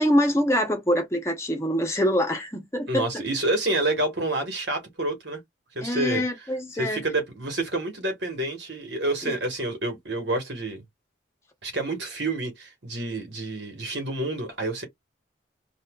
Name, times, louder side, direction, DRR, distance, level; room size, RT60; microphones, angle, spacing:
voice 1, 0.0-3.1 5.8-7.0 9.2-9.4, equal, 15° left, 0.9 m, -24 dB
voice 2, 2.9-5.4 5.7-6.2 6.8-10.8 11.6-14.8, right 2 dB, 60° right, 1.5 m, -28 dB
4.2 x 2.5 x 2.4 m
head